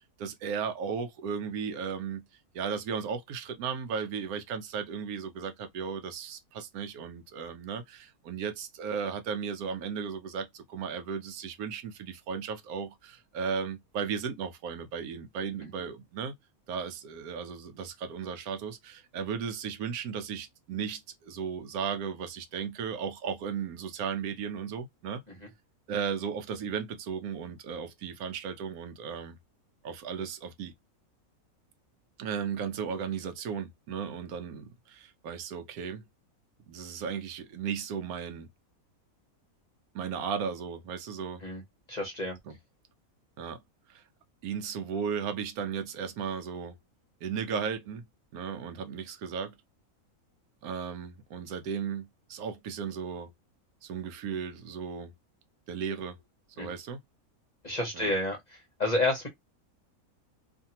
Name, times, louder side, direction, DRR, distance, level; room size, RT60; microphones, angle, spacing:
voice 1, 0.2-2.2 2.5-16.3 16.7-25.2 25.9-29.4 29.8-30.7 32.2-36.0 36.7-38.5 39.9-41.4 42.5-42.6 43.4-43.6 43.9-44.0 44.4-46.8 47.2-48.0 48.3-49.5 50.6-53.3 53.8-55.1 55.7-56.2 56.6-57.0 57.9-58.1, right 6 dB, 75° right, 1.1 m, -35 dB
voice 2, 41.9-42.3 56.6-56.7 57.6-58.4 58.8-59.3, left 2 dB, 35° left, 0.8 m, -29 dB
2.7 x 2.5 x 2.7 m
omnidirectional pair, 1.6 m